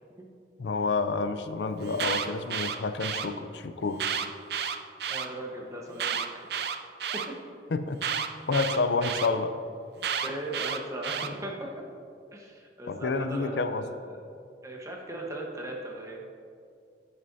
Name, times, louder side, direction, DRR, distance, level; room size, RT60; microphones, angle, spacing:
voice 1, 0.6-4.0 7.7-8.0 8.5-9.5 12.9-13.8, left 3 dB, 80° left, 9 dB, 0.5 m, -29 dB
Alarm, 1.8-3.3 3.9-5.3 5.9-7.3 8.0-9.3 10.0-11.3, right 7 dB, 65° right, 0.5 m, -31 dB
voice 2, 5.0-6.5 7.1-7.4 10.2-11.8 12.3-14.0 14.6-16.2, right 1 dB, 15° right, 0 dB, 1.1 m, -38 dB
16.0 x 6.5 x 2.7 m, 2.4 s
head